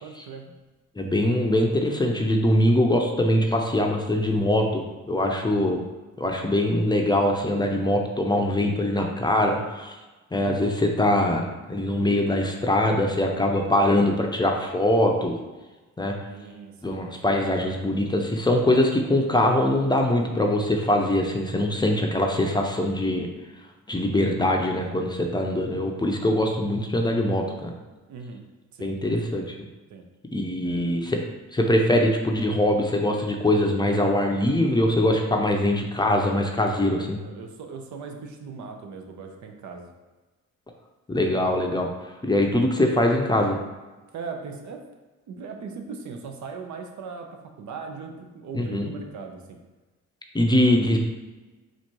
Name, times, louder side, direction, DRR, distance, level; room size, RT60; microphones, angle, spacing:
voice 1, 0.0-0.4 10.3-10.8 16.3-17.0 28.1-28.4 28.7-28.9 29.9-30.1 30.6-30.9 36.8-39.9 44.1-44.8 45.3-49.6, right 5 dB, 70° right, 4 dB, 0.7 m, -39 dB
voice 2, 1.0-4.8 5.1-5.8 6.2-9.9 10.3-15.4 16.0-16.2 16.8-23.3 23.9-27.7 28.8-29.6 30.3-31.2 31.5-37.2 41.1-41.9 42.2-43.6 48.5-48.9 50.3-51.0, left 1 dB, 15° left, 1 dB, 0.6 m, -22 dB
4.2 x 2.5 x 4.5 m, 1.2 s
cardioid pair, 90°, 30 cm